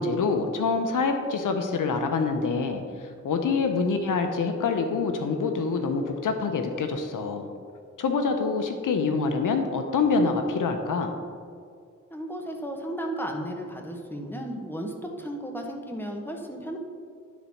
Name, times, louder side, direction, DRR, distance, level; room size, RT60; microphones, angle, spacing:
voice 1, 0.0-7.5 8.0-11.2, left 4 dB, 85° left, 5 dB, 0.7 m, -26 dB
voice 2, 12.1-16.8, right 1 dB, 5° left, 2 dB, 1.3 m, -34 dB
11.5 x 4.0 x 4.4 m, 2.2 s
cardioid pair, 50°, 31 cm